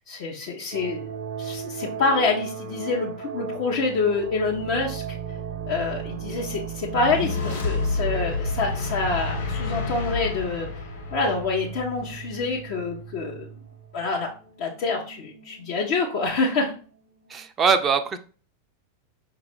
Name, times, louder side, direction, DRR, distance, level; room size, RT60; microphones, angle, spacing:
voice 1, 0.1-1.0 1.4-5.2 5.7-10.7 11.1-13.5 13.9-14.3 14.6-16.7, left 3 dB, 50° left, 0.8 m, -26 dB
sound 1, 0.7-17.4, right 7 dB, 60° right, 0.6 m, -37 dB
sound 2, 6.9-12.2, left 4 dB, 65° left, 1.2 m, -29 dB
voice 2, 17.3-18.2, right 5 dB, 25° right, 0.5 m, -22 dB
5.6 x 2.3 x 3.4 m
figure-of-eight pair, 90°, 0 cm